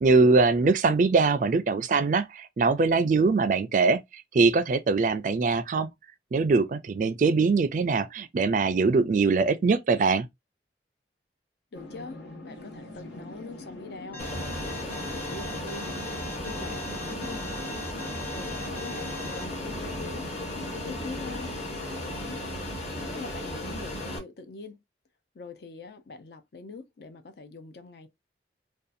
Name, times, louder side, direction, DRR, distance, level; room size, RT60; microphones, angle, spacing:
voice 1, 0.0-5.9 6.3-10.3, right 4 dB, 45° right, 0.3 m, -22 dB
sound 1, 11.7-21.6, left 1 dB, 90° left, 1.1 m, -44 dB
voice 2, 11.7-16.0 16.5-17.8 18.3-20.3 20.7-22.7 23.1-24.8 25.3-28.1, left 3 dB, 65° left, 0.5 m, -43 dB
Alarm, 14.1-19.4, left 1 dB, 10° left, 0.6 m, -41 dB
Fixed-wing aircraft airplane, 14.2-24.2, left 1 dB, 40° left, 0.9 m, -35 dB
2.7 x 2.3 x 2.4 m
head